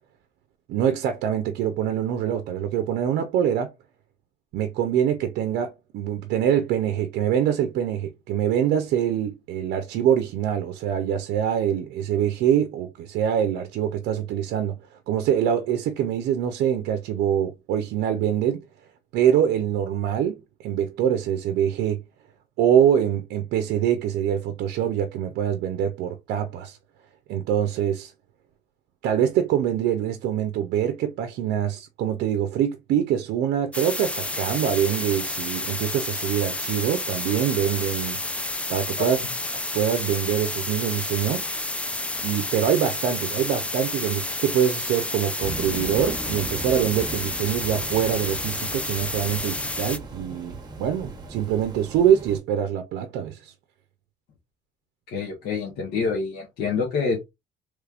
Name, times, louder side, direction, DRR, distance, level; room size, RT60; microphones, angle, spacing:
voice 1, 0.7-3.7 4.5-14.7 15.1-18.6 19.1-22.0 22.6-26.8 27.3-28.1 29.0-38.2 38.7-39.2 39.7-41.5 42.2-53.5, right 9 dB, 80° right, 0.5 m, -24 dB
sound 1, 33.7-50.0, left 2 dB, 5° left, 0.3 m, -30 dB
sound 2, 45.4-52.4, right 2 dB, 25° right, 0.9 m, -38 dB
voice 2, 55.1-57.3, left 5 dB, 75° left, 1.1 m, -27 dB
3.4 x 3.1 x 2.4 m
cardioid pair, 110°, 17 cm